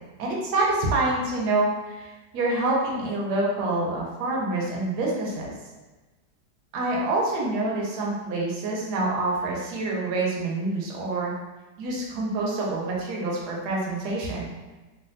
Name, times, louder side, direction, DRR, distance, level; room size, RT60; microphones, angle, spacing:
voice 1, 0.2-5.5 6.7-11.3 11.8-14.5, right 2 dB, 75° right, -3 dB, 1.2 m, -26 dB
3.2 x 2.3 x 2.6 m, 1.2 s
omnidirectional pair, 1.9 m